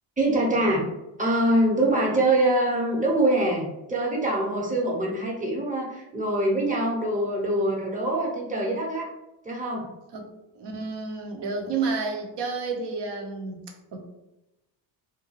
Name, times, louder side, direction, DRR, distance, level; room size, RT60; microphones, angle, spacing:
voice 1, 0.2-0.9 1.2-9.1 9.4-9.9, right 1 dB, 15° right, -2 dB, 0.8 m, -24 dB
voice 2, 10.6-13.6 13.9-14.0, right 4 dB, 60° right, 2 dB, 0.7 m, -30 dB
2.4 x 2.1 x 3.1 m, 0.95 s
cardioid pair, 80°, 47 cm